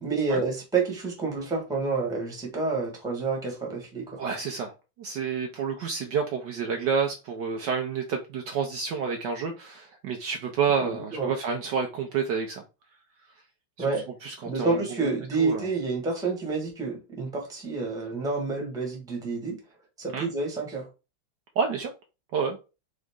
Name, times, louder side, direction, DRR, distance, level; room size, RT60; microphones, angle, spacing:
voice 1, 0.0-4.2 10.8-11.3 13.8-14.0 14.4-19.6 20.0-20.9, right 4 dB, ahead, 1.2 m, -29 dB
voice 2, 4.2-12.6 13.8-13.9 14.2-15.7 20.1-20.3 21.6-21.9 22.3-22.6, right 6 dB, 70° right, 1.2 m, -29 dB
3.9 x 3.7 x 3.6 m
omnidirectional pair, 2.3 m